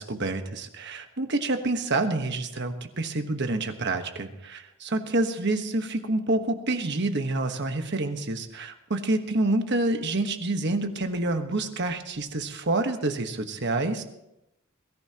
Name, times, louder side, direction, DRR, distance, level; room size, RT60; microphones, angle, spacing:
voice 1, 0.0-14.0, right 2 dB, 55° right, 6 dB, 1.3 m, -28 dB
22.0 x 14.5 x 2.9 m, 0.87 s
head